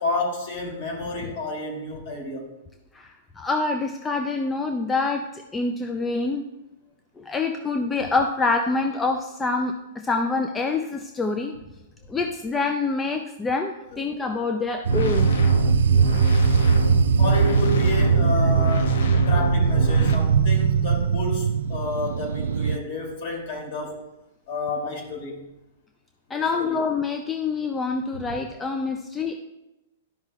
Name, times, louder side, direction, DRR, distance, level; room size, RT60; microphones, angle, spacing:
voice 1, 0.0-2.5 13.9-14.0 17.2-24.0 24.5-25.4 26.3-26.8, left 2 dB, 50° left, 0 dB, 2.9 m, -30 dB
voice 2, 3.4-6.5 7.2-11.5 12.1-15.3 26.3-29.4, left 3 dB, 10° left, 4 dB, 0.4 m, -26 dB
sound 1, 14.8-22.8, right 7 dB, 85° right, 0.3 m, -21 dB
sound 2, 14.9-20.1, equal, 80° left, 1.0 m, -25 dB
12.5 x 5.4 x 2.4 m, 0.96 s
hypercardioid pair, 160°, 0 cm